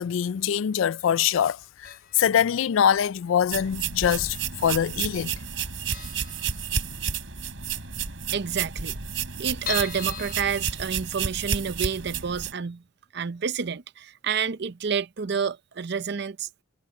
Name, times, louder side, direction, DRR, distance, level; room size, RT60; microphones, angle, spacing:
voice 1, 0.0-5.3, left 9 dB, 90° left, 0.4 m, -24 dB
sound 1, 1.8-2.4 2.6-2.7 3.7-4.4 4.7-4.8 5.1-5.2 5.5-5.6 5.9-7.2 7.6-7.7 8.0-8.1 8.3-8.4 8.9-11.5 11.9-12.0 12.4-12.5, left 10 dB, 50° left, 5.0 m, -39 dB
sound 2, 3.5-12.5, right 7 dB, 80° right, 4.0 m, -31 dB
voice 2, 8.3-9.0 9.4-12.8 13.1-16.5, right 6 dB, 60° right, 0.6 m, -29 dB
head